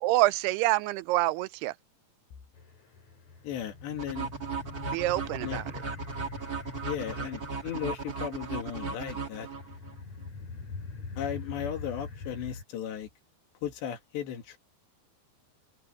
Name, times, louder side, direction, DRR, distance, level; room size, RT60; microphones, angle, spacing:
voice 1, 0.0-1.7 4.9-5.6, right 18 dB, 80° right, 2.5 m, -26 dB
sound 1, 2.5-12.6, left 4 dB, 40° left, 4.7 m, -44 dB
voice 2, 3.4-4.3 5.4-5.6 6.8-9.5 11.2-13.1 13.6-14.6, left 9 dB, 90° left, 4.6 m, -36 dB
sound 2, 4.0-9.9, right 4 dB, 45° right, 1.1 m, -36 dB
omnidirectional pair, 4.8 m